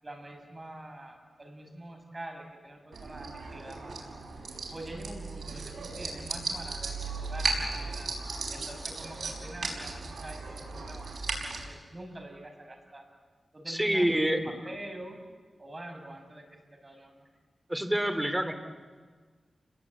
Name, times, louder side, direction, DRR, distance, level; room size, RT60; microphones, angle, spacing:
voice 1, 0.0-4.1 4.7-8.1 8.5-13.1 13.5-15.2 15.6-16.4 16.8-17.2, right 1 dB, 30° right, 3 dB, 6.1 m, -45 dB
sound 1, 2.9-11.6, right 3 dB, 80° right, 5.4 m, -36 dB
voice 2, 13.7-14.4 17.7-18.5, right 1 dB, 10° right, 7 dB, 2.8 m, -27 dB
30.0 x 21.0 x 8.4 m, 1.5 s
wide cardioid pair, 90°, 0 cm